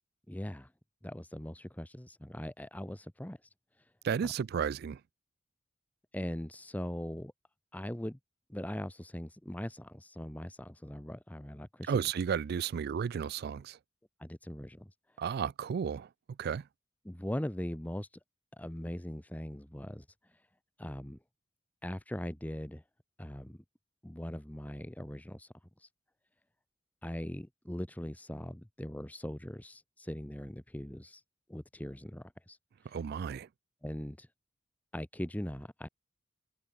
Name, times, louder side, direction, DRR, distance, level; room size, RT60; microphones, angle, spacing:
voice 1, 0.3-0.7 1.0-3.4 4.2-4.3 6.1-7.3 7.7-8.2 8.5-12.1 14.2-14.9 17.0-18.1 18.6-20.0 20.8-21.2 21.8-22.8 23.2-23.6 24.0-25.5 25.8-25.9 27.0-31.2 31.5-32.6 32.8-33.0 33.8-34.3 34.9-35.9, equal, 10° left, 0.8 m, -40 dB
voice 2, 4.0-5.0 11.9-13.8 15.2-16.1 16.4-16.6 32.9-33.5, right 7 dB, 50° right, 0.3 m, -33 dB
head